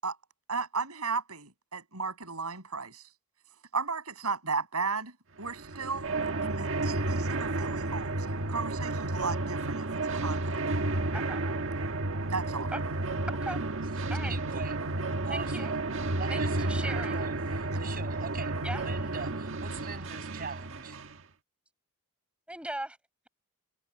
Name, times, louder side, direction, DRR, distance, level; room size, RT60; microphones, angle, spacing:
voice 1, 0.5-3.1 3.7-6.2 6.4-9.9 10.1-10.6 12.3-12.7 17.7-17.8, right 4 dB, 75° right, 7.4 m, -35 dB
sound 1, 5.4-21.2, right 2 dB, 60° right, 1.6 m, -32 dB
voice 2, 13.3-13.6 14.1-14.3 15.3-15.7 16.3-17.2 18.6-18.9 22.5-23.0, right 1 dB, 5° right, 7.0 m, -38 dB
voice 3, 14.2-14.8 15.2-15.7 16.1-21.0, right 5 dB, 40° right, 6.0 m, -42 dB
head